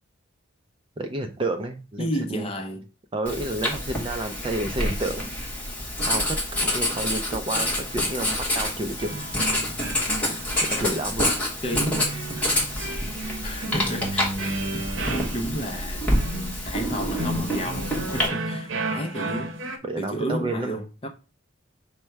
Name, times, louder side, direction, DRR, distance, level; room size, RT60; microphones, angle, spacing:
voice 1, 1.0-2.5 3.1-5.3 6.1-9.3 10.7-11.3 19.8-20.8, right 2 dB, 25° right, 0.3 m, -30 dB
voice 2, 2.0-2.8 11.6-12.2 13.4-14.5 14.7-16.1 16.6-19.5 20.0-21.1, equal, 25° left, 0.5 m, -32 dB
Writing, 3.3-18.3, left 1 dB, 5° left, 1.1 m, -27 dB
sound 1, 9.0-19.8, right 2 dB, 70° right, 0.8 m, -33 dB
5.4 x 2.1 x 4.5 m
head